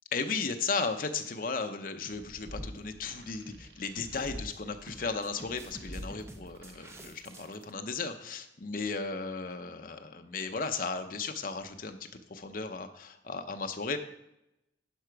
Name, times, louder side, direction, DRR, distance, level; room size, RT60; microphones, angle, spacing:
voice 1, 0.1-14.0, left 4 dB, 50° left, 7 dB, 0.7 m, -35 dB
sound 1, 2.0-2.3 2.6-2.8 3.5-3.7 4.0-4.6 4.9-7.7, right 1 dB, 15° right, 0.7 m, -50 dB
sound 2, 2.2-7.6, equal, 80° right, 1.2 m, -47 dB
11.5 x 4.9 x 4.7 m, 0.85 s
head